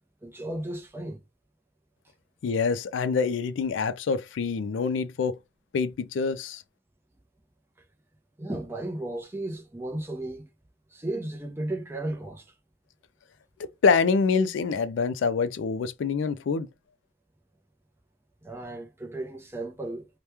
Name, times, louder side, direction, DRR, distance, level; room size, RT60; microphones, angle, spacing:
voice 1, 0.2-1.2 8.4-10.5 10.9-12.5 18.4-20.1, right 1 dB, 10° right, 0.5 m, -34 dB
voice 2, 2.4-5.4 5.7-6.6 13.8-16.7, left 5 dB, 75° left, 0.3 m, -25 dB
2.9 x 2.2 x 3.3 m
head